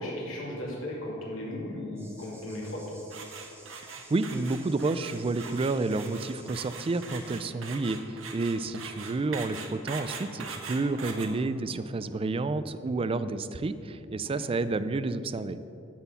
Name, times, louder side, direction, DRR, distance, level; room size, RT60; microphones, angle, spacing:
voice 1, 0.0-2.8 11.5-12.2 14.3-14.4, left 1 dB, 85° left, -4 dB, 2.4 m, -37 dB
sound 1, 2.0-7.4, right 2 dB, 10° right, 1.2 m, -54 dB
sound 2, 3.1-11.3, right 5 dB, 75° right, 1.1 m, -41 dB
voice 2, 4.1-15.6, right 3 dB, 30° right, 13 dB, 0.3 m, -30 dB
12.0 x 4.3 x 7.1 m, 2.7 s
head